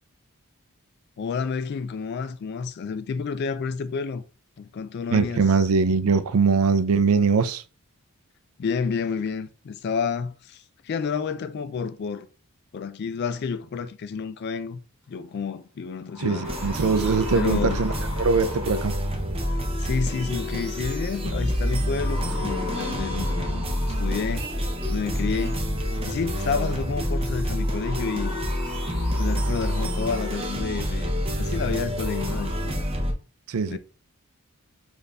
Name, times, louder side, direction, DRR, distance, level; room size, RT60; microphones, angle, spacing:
voice 1, 1.2-4.2 4.6-5.4 8.6-12.3 12.7-14.8 15.1-16.5 17.3-17.8 19.8-24.4 24.9-25.6 26.1-28.4 29.1-31.1 31.4-32.9 33.7-33.8, left 5 dB, 50° left, 0.3 m, -30 dB
voice 2, 5.1-7.6 16.2-17.9 18.2-18.9 33.5-33.8, right 5 dB, 80° right, 0.4 m, -22 dB
sound 1, 15.3-15.4 15.9-19.3 20.7-21.1 21.9-24.7 26.0-26.1 27.6-30.5 30.9-31.0 31.6-31.7 31.9-32.5, left 2 dB, 10° right, 2.0 m, -39 dB
sound 2, 16.4-33.1, equal, 25° right, 0.7 m, -27 dB
4.1 x 2.5 x 3.3 m
head